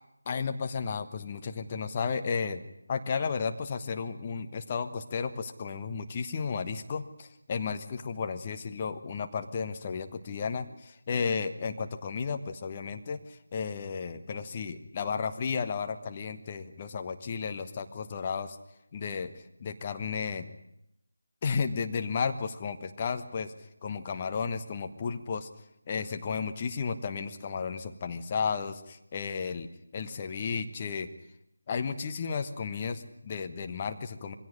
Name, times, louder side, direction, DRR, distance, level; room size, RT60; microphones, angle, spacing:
voice 1, 0.2-2.6 2.9-18.6 18.9-19.3 19.6-20.4 21.4-23.5 23.8-25.5 25.9-31.1 31.7-34.3, left 5 dB, 25° left, 7 dB, 1.2 m, -33 dB
23.0 x 17.0 x 9.9 m, 0.81 s
figure-of-eight pair, 160°, 0 cm